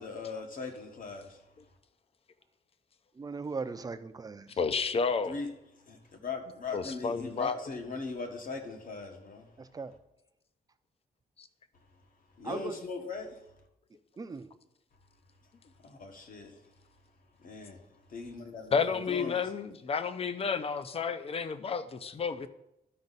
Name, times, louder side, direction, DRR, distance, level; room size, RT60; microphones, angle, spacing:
voice 1, 0.0-1.4 5.2-5.5 5.8-9.5 12.4-13.5 15.8-16.7 17.4-17.8 18.1-19.4, left 4 dB, 55° left, 3 dB, 1.3 m, -40 dB
voice 2, 3.1-4.6 9.6-9.9 12.4-12.8 14.2-14.5, right 4 dB, 20° right, 10 dB, 0.4 m, -38 dB
voice 3, 4.6-5.3 6.7-7.6 11.4-11.5 18.7-22.5, left 5 dB, 35° left, 12 dB, 0.5 m, -31 dB
12.0 x 5.3 x 4.0 m, 0.85 s
wide cardioid pair, 170°, 17 cm